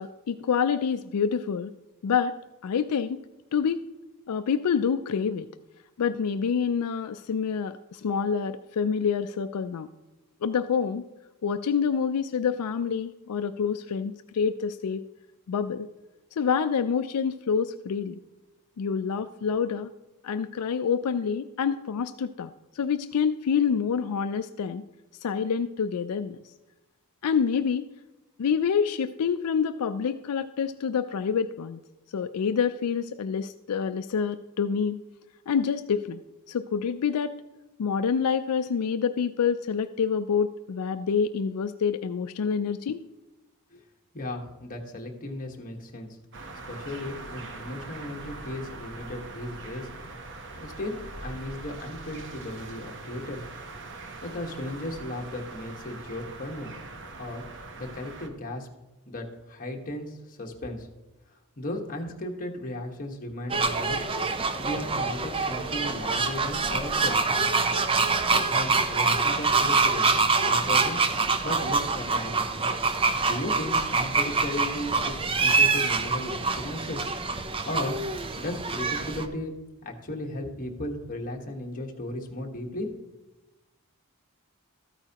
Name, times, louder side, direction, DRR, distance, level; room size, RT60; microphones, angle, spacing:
voice 1, 0.0-1.7 2.0-2.4 2.6-3.2 3.5-3.8 4.3-5.5 6.0-9.9 10.4-11.0 11.4-15.0 15.5-15.9 16.4-18.2 18.8-19.9 20.2-24.8 25.2-26.4 27.2-27.8 28.4-31.8 32.1-35.0 35.5-36.2 36.5-37.3 37.8-43.0, left 6 dB, 85° left, 9 dB, 0.4 m, -27 dB
voice 2, 44.1-46.2 46.7-49.9 50.6-50.9 51.2-53.4 54.2-56.7 57.1-57.4 57.8-58.7 59.1-60.9 61.3-64.0 64.6-67.2 68.3-70.1 70.4-71.0 71.4-72.5 73.2-77.0 77.6-78.0 78.3-79.6 79.8-82.9, left 1 dB, 40° left, 1 dB, 1.4 m, -35 dB
sound 1, 46.3-58.3, right 3 dB, 55° right, 1.0 m, -42 dB
sound 2, 63.5-79.2, right 4 dB, 25° right, 0.6 m, -25 dB
13.5 x 9.0 x 2.9 m, 1.0 s
head